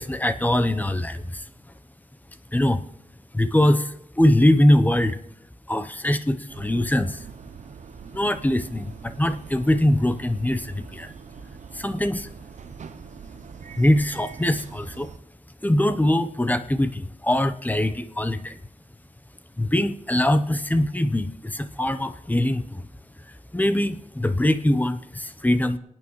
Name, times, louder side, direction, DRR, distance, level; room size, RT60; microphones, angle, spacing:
voice 1, 0.0-1.4 2.5-2.8 3.3-5.2 5.7-7.2 8.1-11.1 11.7-12.3 13.8-15.1 15.6-18.6 19.6-22.9 23.5-25.8, left 1 dB, 15° left, 11 dB, 0.8 m, -22 dB
sound 1, 6.5-15.2, right 6 dB, 70° right, 0.7 m, -43 dB
26.5 x 9.0 x 3.2 m, 0.75 s
cardioid pair, 75°, 13 cm